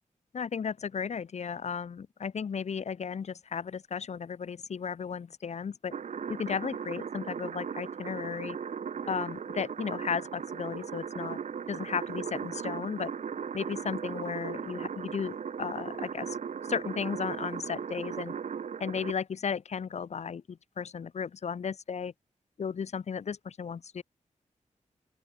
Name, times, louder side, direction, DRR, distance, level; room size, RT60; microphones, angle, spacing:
voice 1, 0.3-5.9 6.3-8.6 9.1-11.4 11.7-13.1 13.5-16.4 16.7-18.4 18.8-22.1 22.6-24.0, left 6 dB, 60° left, 0.8 m, -35 dB
sound 1, 5.9-19.1, right 7 dB, 65° right, 0.8 m, -37 dB
open air
wide cardioid pair, 95°, 13 cm